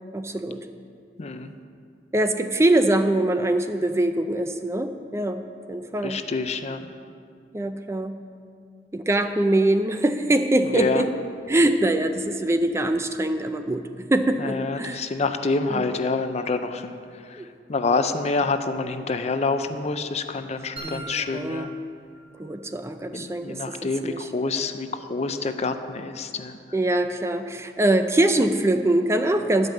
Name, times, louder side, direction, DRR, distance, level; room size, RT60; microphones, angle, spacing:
voice 1, 0.1-0.7 2.1-5.4 5.7-6.2 7.5-8.2 8.9-11.1 11.5-15.1 15.7-15.8 17.4-17.5 20.8-21.7 22.4-24.3 26.7-29.7, right 1 dB, 15° right, 8 dB, 0.4 m, -23 dB
voice 2, 1.2-1.5 6.0-6.9 10.7-11.0 14.4-17.0 17.7-21.7 23.1-26.6, left 3 dB, 40° left, 9 dB, 0.5 m, -27 dB
sound 1, 20.8-22.8, right 2 dB, 35° right, 1.2 m, -42 dB
10.5 x 5.3 x 7.6 m, 2.3 s
head